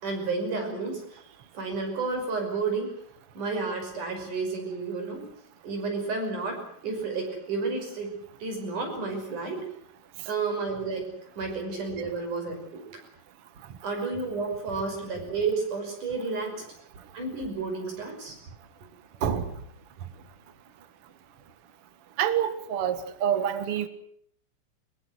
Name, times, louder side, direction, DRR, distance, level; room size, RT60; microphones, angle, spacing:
voice 1, 0.0-1.2 1.5-2.9 3.3-5.3 5.6-8.1 8.4-9.7 10.3-12.8 13.8-16.6 17.1-18.4, right 4 dB, 45° right, 4 dB, 7.1 m, -31 dB
voice 2, 22.2-23.9, right 9 dB, 70° right, 11 dB, 1.3 m, -26 dB
23.0 x 21.5 x 8.0 m, 0.65 s
omnidirectional pair, 5.0 m